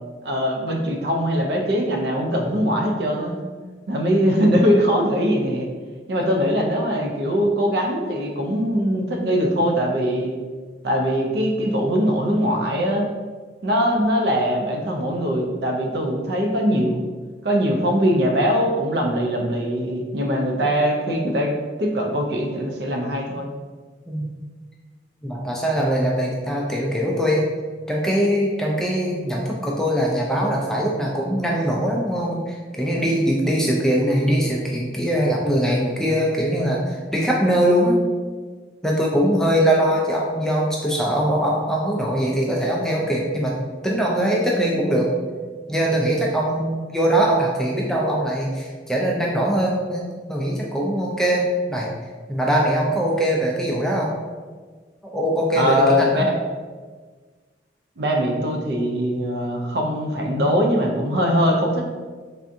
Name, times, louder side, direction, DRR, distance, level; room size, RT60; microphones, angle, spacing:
voice 1, 0.2-3.4 3.9-5.7 6.1-10.3 10.8-13.1 13.6-17.0 17.4-21.5 21.8-23.5 55.6-56.2 58.0-61.8, equal, 60° right, 1 dB, 0.4 m, -21 dB
voice 2, 25.2-27.5 27.9-38.0 38.8-43.5 43.8-45.1 45.7-51.9 52.3-54.1 55.0-56.3, equal, 5° left, -3 dB, 0.3 m, -22 dB
3.4 x 2.5 x 2.5 m, 1.5 s
head